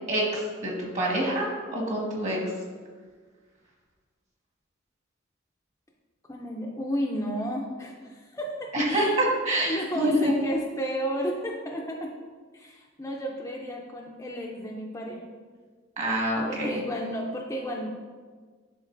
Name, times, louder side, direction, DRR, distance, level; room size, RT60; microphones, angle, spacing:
voice 1, 0.1-2.4 8.7-10.3 16.0-16.8, right 1 dB, 35° right, -2 dB, 1.4 m, -26 dB
voice 2, 6.3-9.2 9.7-12.1 12.5-15.2 16.5-17.9, equal, 15° left, -1 dB, 0.5 m, -32 dB
10.5 x 3.6 x 2.5 m, 1.5 s
head